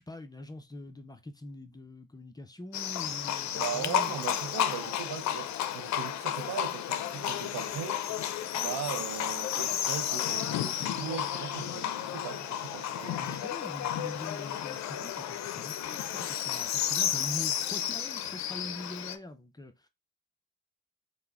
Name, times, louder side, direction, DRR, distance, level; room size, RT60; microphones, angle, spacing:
voice 1, 0.0-4.2 13.0-19.9, left 1 dB, 15° left, 0.5 m, -43 dB
Livestock farm animals working animals, 2.7-19.2, left 10 dB, 65° left, 0.5 m, -32 dB
voice 2, 3.5-8.0 8.5-13.3, right 8 dB, 80° right, 0.6 m, -39 dB
3.6 x 2.1 x 3.4 m
cardioid pair, 90°, 30 cm